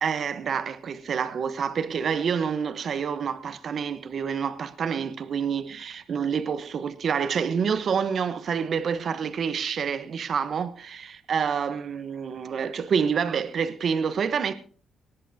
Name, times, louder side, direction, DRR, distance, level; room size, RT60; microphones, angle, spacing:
voice 1, 0.0-14.5, right 6 dB, 55° right, 1.0 m, -28 dB
19.0 x 11.0 x 2.8 m
cardioid pair, 90°, 0 cm